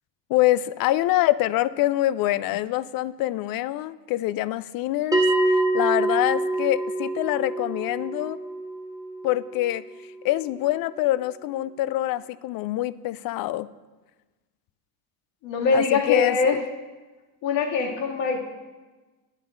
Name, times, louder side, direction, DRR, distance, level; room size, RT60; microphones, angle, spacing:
voice 1, 0.3-8.4 9.2-9.8 10.2-13.7 15.7-16.6, left 15 dB, 50° left, 18 dB, 0.5 m, -25 dB
Bell, 5.1-10.2, right 2 dB, 10° right, 1.5 m, -26 dB
voice 2, 15.4-16.6 17.4-18.4, left 5 dB, 65° left, -1 dB, 2.4 m, -23 dB
18.5 x 7.5 x 2.6 m, 1.2 s
supercardioid pair, 95°, 47 cm